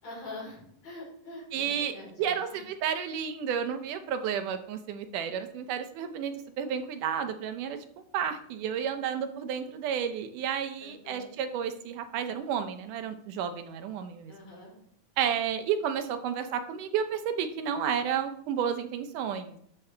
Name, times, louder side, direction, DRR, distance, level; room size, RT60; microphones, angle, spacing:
voice 1, 0.0-2.7 10.8-11.3 14.3-14.7, left 2 dB, 55° left, -4 dB, 5.6 m, -44 dB
voice 2, 1.5-1.9 2.2-7.8 8.1-14.3 15.2-19.6, right 8 dB, 80° right, 8 dB, 2.3 m, -31 dB
12.0 x 6.8 x 3.4 m, 0.67 s
omnidirectional pair, 3.7 m